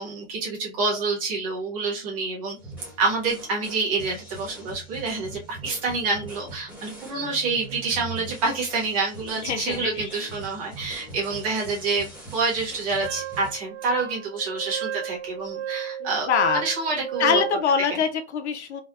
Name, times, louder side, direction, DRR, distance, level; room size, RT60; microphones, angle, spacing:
voice 1, 0.0-2.6 3.0-16.3 16.5-17.4, right 3 dB, 30° right, -4 dB, 1.1 m, -27 dB
sound 1, 2.6-13.5, right 3 dB, 5° right, 0.8 m, -42 dB
voice 2, 9.4-10.3 16.0-16.6 17.2-18.8, left 6 dB, 65° left, 6 dB, 0.6 m, -24 dB
Wind instrument woodwind instrument, 13.0-17.6, right 10 dB, 65° right, 0.7 m, -33 dB
3.4 x 2.2 x 2.3 m, 0.31 s
hypercardioid pair, 170°, 36 cm